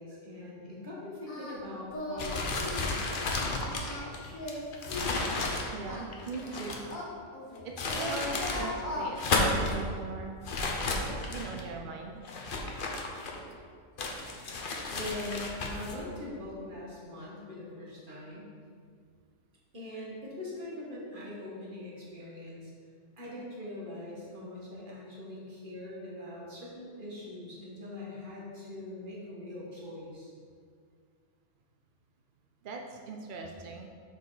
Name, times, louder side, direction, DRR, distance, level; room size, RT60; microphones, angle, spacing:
voice 1, 0.0-3.3 14.9-18.5 19.7-22.7 23.2-30.3, left 1 dB, 40° right, -5 dB, 1.6 m, -42 dB
Singing, 1.3-1.6 1.9-2.3 2.6-2.9 3.6-5.2 5.8-7.6 7.9-9.1, left 1 dB, 75° left, 2.1 m, -38 dB
sound 1, 2.2-6.9 7.5-8.7 9.0-9.8 10.4-11.6 12.2-13.5 14.0-16.0, left 3 dB, 50° left, 0.8 m, -33 dB
voice 2, 5.7-6.8 7.6-10.4 11.3-12.2 32.6-33.9, right 4 dB, 65° right, 2 dB, 0.5 m, -40 dB
6.8 x 5.0 x 4.0 m, 2.1 s
omnidirectional pair, 1.5 m